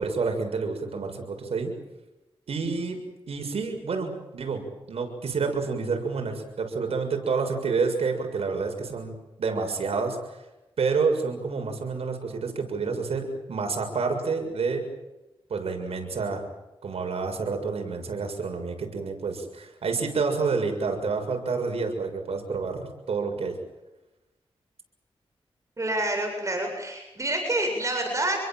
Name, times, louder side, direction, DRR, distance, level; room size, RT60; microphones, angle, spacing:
voice 1, 0.0-1.7 2.5-3.0 3.3-10.4 10.8-14.8 15.5-16.4 16.8-23.5, right 4 dB, 80° right, 3 dB, 6.9 m, -29 dB
voice 2, 25.8-28.4, right 1 dB, 30° right, 3 dB, 7.8 m, -27 dB
28.0 x 22.5 x 7.7 m, 1.0 s
cardioid pair, 65°, 10 cm